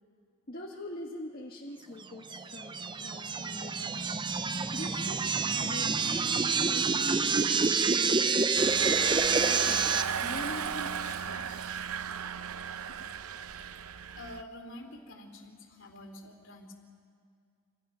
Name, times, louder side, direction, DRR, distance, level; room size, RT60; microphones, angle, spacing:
voice 1, 0.5-4.1 4.7-8.1 9.4-11.6 12.9-13.1, left 1 dB, 45° left, -2 dB, 1.7 m, -44 dB
sound 1, 2.3-10.0, right 4 dB, 20° right, 0.6 m, -28 dB
Engine, 8.6-14.4, right 7 dB, 85° right, 0.7 m, -35 dB
voice 2, 13.7-16.7, left 1 dB, 60° left, 4 dB, 2.9 m, -47 dB
27.0 x 27.0 x 5.8 m, 2.3 s
head